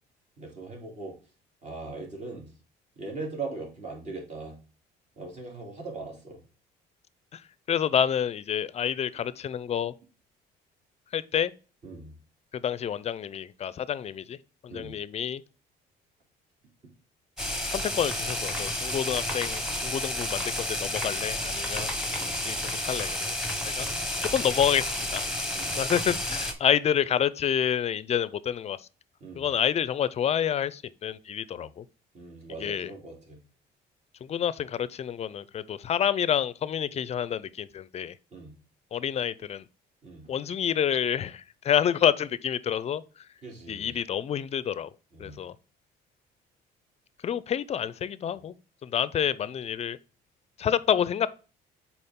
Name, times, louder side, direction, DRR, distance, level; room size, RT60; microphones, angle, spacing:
voice 1, 0.4-1.1 1.6-2.5 3.0-4.6 5.2-6.4 11.8-12.2 14.7-15.0 22.2-22.4 23.8-23.9 25.5-25.7 29.2-29.5 31.5-31.7 32.1-33.4 38.3-38.5 40.0-40.3 43.4-44.0 45.1-45.5, right 3 dB, 45° right, 3.1 m, -40 dB
voice 2, 7.3-9.9 11.1-11.5 12.5-14.4 14.6-15.4 17.7-21.9 22.4-23.3 23.7-23.9 24.2-25.3 25.8-28.9 29.4-31.8 32.6-32.9 34.2-38.1 38.9-39.6 40.3-43.0 43.7-44.9 45.2-45.5 47.2-48.5 48.8-50.0 50.6-51.3, left 9 dB, 40° left, 0.5 m, -28 dB
sound 1, 17.4-26.5, left 1 dB, 5° right, 1.3 m, -31 dB
6.8 x 4.3 x 3.7 m
cardioid pair, 110°, 17 cm